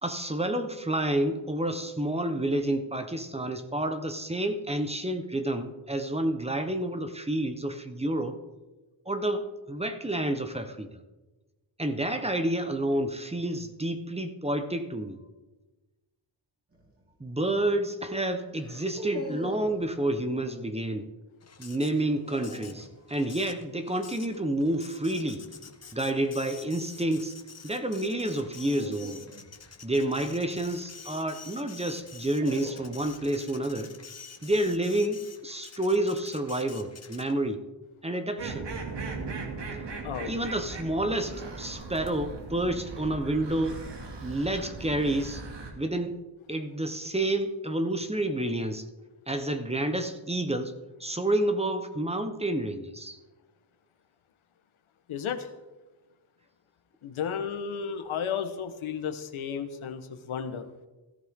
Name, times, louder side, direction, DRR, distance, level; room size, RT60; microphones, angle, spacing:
voice 1, 0.0-8.4 9.1-10.9 11.8-15.2 17.2-21.1 21.6-25.5 25.9-27.3 27.6-29.2 29.8-33.9 34.4-37.6 38.0-38.7 40.2-43.8 44.2-45.4 45.8-46.2 46.5-48.9 49.3-50.7 51.0-53.2, right 1 dB, 15° right, 7 dB, 1.0 m, -29 dB
sound 1, 16.7-17.0 18.6-19.8 21.9-22.9 25.3-25.7 28.5-30.9 31.9-33.2, right 1 dB, 30° right, 3.2 m, -43 dB
Printer, 21.4-37.5, left 5 dB, 30° left, 1.1 m, -48 dB
sound 2, 38.4-45.7, right 3 dB, 60° right, 2.6 m, -38 dB
voice 2, 55.1-55.5 57.0-60.7, left 7 dB, 90° left, 7 dB, 1.3 m, -33 dB
16.5 x 14.0 x 3.7 m, 1.2 s
wide cardioid pair, 120°, 47 cm